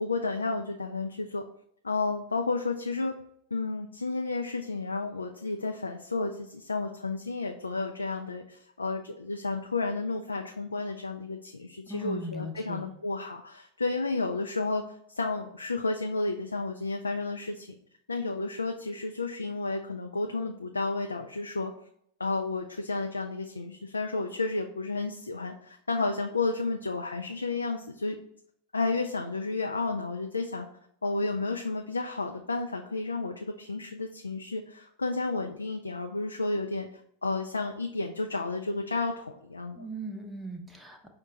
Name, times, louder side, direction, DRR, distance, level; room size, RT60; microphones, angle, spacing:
voice 1, 0.0-1.4 1.8-3.1 3.5-17.7 18.1-21.7 22.2-28.2 28.7-30.7 31.0-36.9 37.2-39.9, left 3 dB, 80° left, 3 dB, 0.3 m, -32 dB
voice 2, 11.9-12.9 39.8-41.1, right 1 dB, 5° right, 2 dB, 0.6 m, -38 dB
5.3 x 2.2 x 3.9 m, 0.70 s
figure-of-eight pair, 90°, 0 cm